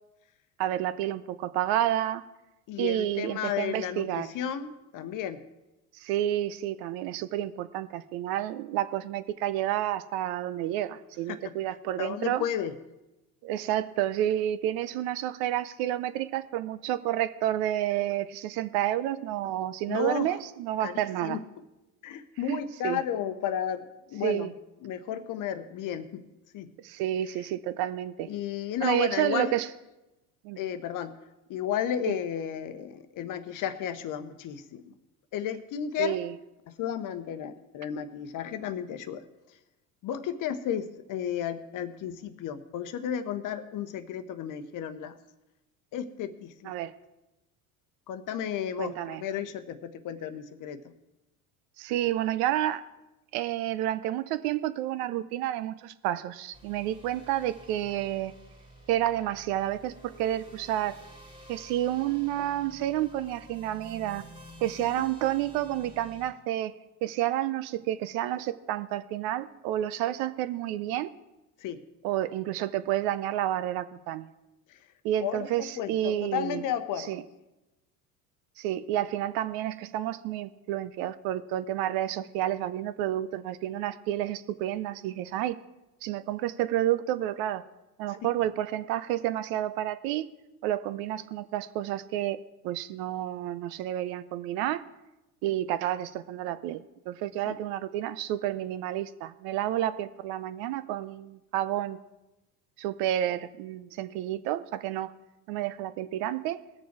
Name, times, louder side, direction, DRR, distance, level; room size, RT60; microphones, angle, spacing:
voice 1, 0.6-2.2 2.8-4.3 6.0-12.4 13.4-21.4 22.5-23.0 24.2-24.5 26.8-28.3 28.8-29.7 30.4-30.6 32.1-32.2 36.0-36.3 46.6-46.9 48.8-49.2 51.8-52.8 53.3-58.3 58.9-61.0 61.5-64.2 64.6-66.7 67.0-71.1 72.0-74.3 75.0-76.6 77.1-77.2 78.6-85.6 86.0-87.6 88.0-90.3 90.6-94.8 95.4-102.0 102.8-105.1 105.5-106.6, right 13 dB, 55° right, 14 dB, 0.7 m, -30 dB
voice 2, 2.7-5.4 11.3-11.5 12.0-12.8 19.9-20.3 20.8-21.4 22.0-24.5 24.8-26.2 26.5-26.7 28.3-29.6 30.6-31.2 31.5-34.9 35.3-36.2 36.7-39.2 40.0-45.2 45.9-46.7 48.1-50.8 71.6-71.8 74.7-74.8 75.2-77.2 88.1-88.2 97.5-97.6, left 9 dB, 45° left, 11 dB, 0.9 m, -33 dB
sound 1, 56.5-66.3, right 1 dB, 10° right, 2.4 m, -50 dB
19.5 x 6.9 x 4.7 m, 1.0 s
hypercardioid pair, 70°, 44 cm